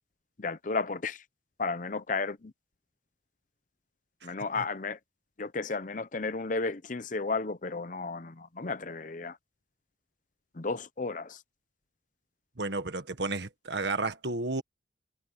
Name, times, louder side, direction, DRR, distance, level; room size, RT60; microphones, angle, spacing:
voice 1, 0.4-1.2 1.6-2.5 4.2-5.0 5.4-9.4 10.5-11.4, left 4 dB, 45° left, 0.8 m, -33 dB
voice 2, 12.6-14.6, right 3 dB, 70° right, 1.7 m, -32 dB
head